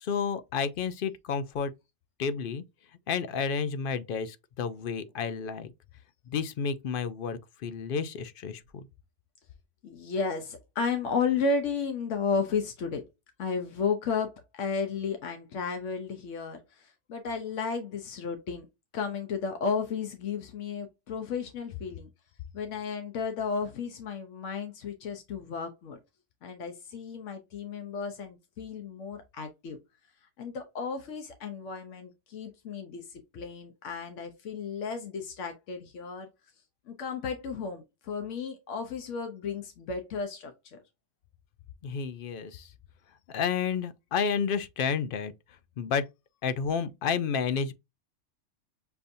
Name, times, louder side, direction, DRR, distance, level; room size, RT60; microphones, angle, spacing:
voice 1, 0.0-1.7 2.2-2.6 3.1-5.7 6.3-8.8 41.8-42.6 43.3-45.3 45.8-46.0 46.4-47.7, left 6 dB, 60° left, 0.6 m, -31 dB
voice 2, 9.8-13.0 13.4-18.7 18.9-22.1 22.5-26.0 26.4-29.8 30.4-36.3 36.9-40.8, left 5 dB, 90° left, 1.1 m, -33 dB
6.8 x 2.6 x 2.6 m
omnidirectional pair, 1.2 m